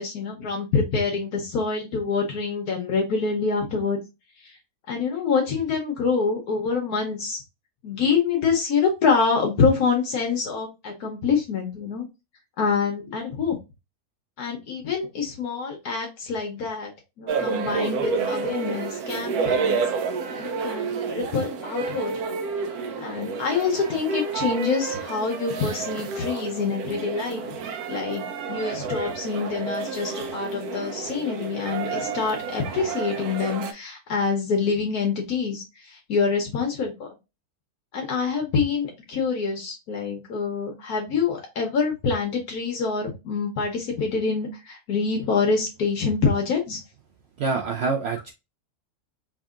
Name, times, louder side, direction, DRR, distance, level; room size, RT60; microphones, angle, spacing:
voice 1, 0.0-4.0 4.9-7.4 7.8-12.0 12.6-13.6 14.4-16.9 17.2-19.8 20.4-22.2 23.0-27.4 27.9-35.6 36.1-37.1 37.9-46.8, left 5 dB, 80° left, 1 dB, 1.3 m, -26 dB
sound 1, 17.3-33.7, right 5 dB, 80° right, 1.2 m, -30 dB
voice 2, 47.4-48.3, right 4 dB, 65° right, 3 dB, 0.6 m, -26 dB
4.6 x 2.8 x 2.4 m, 0.25 s
omnidirectional pair, 1.6 m